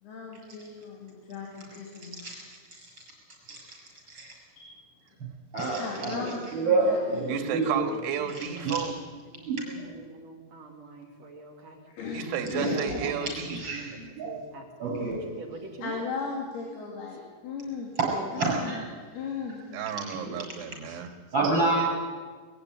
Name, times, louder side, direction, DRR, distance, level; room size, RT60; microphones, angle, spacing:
voice 1, 0.0-2.2 4.6-4.7 5.7-7.4 11.9-13.0 15.8-17.9 18.3-18.7 19.1-19.6, left 5 dB, 60° left, -1 dB, 4.3 m, -37 dB
voice 2, 5.5-7.8 8.6-8.8 9.5-9.7 12.5-14.3 14.8-15.2 18.0-18.9 20.1-20.3 21.3-21.9, right 3 dB, 25° right, -1 dB, 7.7 m, -28 dB
voice 3, 7.3-9.0 12.1-13.6 19.7-21.1, right 8 dB, 70° right, 6 dB, 3.7 m, -32 dB
voice 4, 9.3-11.8 12.6-13.3 13.7-14.0 14.2-15.0 15.3-16.0 18.0-18.4 18.7-18.8, right 3 dB, 45° right, 2 dB, 3.0 m, -43 dB
22.0 x 15.0 x 9.5 m, 1.5 s
omnidirectional pair, 5.2 m